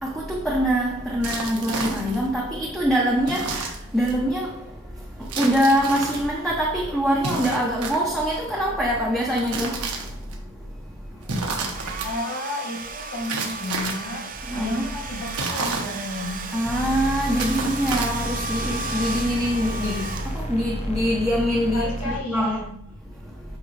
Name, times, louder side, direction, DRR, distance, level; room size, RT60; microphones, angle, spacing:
voice 1, 0.0-4.6 5.2-10.1 14.5-15.0 16.5-22.6, equal, ahead, 0.9 m, -24 dB
sound 1, 1.2-2.3 3.2-4.2 5.3-6.2 7.2-8.4 9.2-10.3 11.2-12.1 13.2-14.1 15.2-16.3 17.2-18.4, right 3 dB, 90° right, 1.4 m, -31 dB
Domestic sounds home sounds, 11.6-20.8, right 3 dB, 40° right, 0.7 m, -34 dB
voice 2, 12.0-16.5 21.7-22.8, left 1 dB, 80° left, 2.6 m, -32 dB
sound 2, 16.6-22.2, equal, 30° left, 0.8 m, -32 dB
8.3 x 5.2 x 3.3 m
head